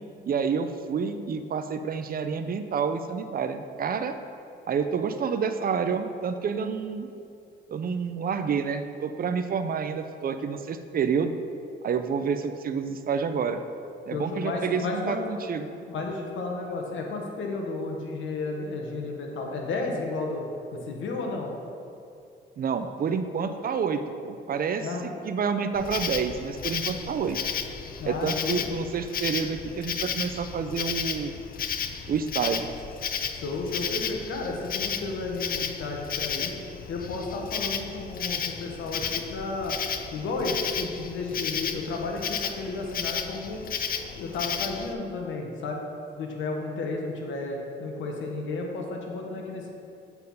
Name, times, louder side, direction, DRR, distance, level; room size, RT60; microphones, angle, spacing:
voice 1, 0.2-4.2 4.7-7.1 7.7-11.3 11.8-13.6 14.1-15.7 22.6-27.4 28.0-31.3 32.1-32.7, right 6 dB, 45° right, 9 dB, 0.5 m, -29 dB
voice 2, 14.1-15.2 15.9-20.5 20.7-21.5 24.8-25.1 26.9-27.1 28.0-28.6 33.4-36.6 36.9-39.8 40.1-43.6 44.1-45.8 46.1-49.7, left 3 dB, 75° left, 1 dB, 1.3 m, -32 dB
Insect, 25.7-44.9, left 7 dB, 45° left, 0.5 m, -33 dB
8.2 x 4.5 x 5.5 m, 2.5 s
cardioid pair, 90°, 20 cm